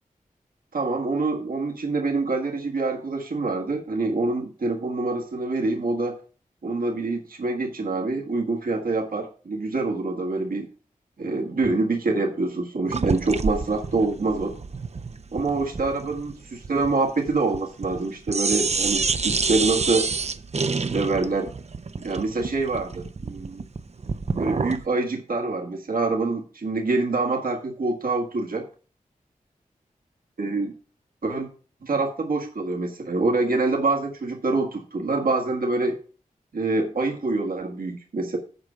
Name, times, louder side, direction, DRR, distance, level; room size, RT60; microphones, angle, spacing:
voice 1, 0.7-6.2 6.6-10.7 11.2-14.6 15.3-20.1 20.8-21.5 22.0-23.6 24.4-28.7 30.4-30.7 31.2-31.5 31.8-36.0 36.5-38.4, right 3 dB, 75° right, 0 dB, 1.7 m, -26 dB
sound 1, 12.9-18.0 18.3-24.9, right 4 dB, 45° right, 0.6 m, -28 dB
8.0 x 4.9 x 7.3 m, 0.39 s
cardioid pair, 40°, 15 cm